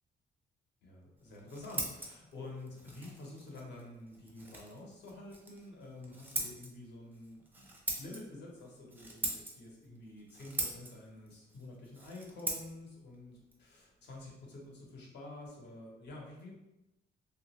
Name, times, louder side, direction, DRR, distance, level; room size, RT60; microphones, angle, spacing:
voice 1, 0.8-7.7 8.0-16.6, left 2 dB, 60° left, -1 dB, 0.9 m, -49 dB
Scissors, 1.2-14.7, right 2 dB, 10° right, 0.4 m, -43 dB
2.9 x 2.4 x 3.0 m, 0.94 s
cardioid pair, 180°, 20 cm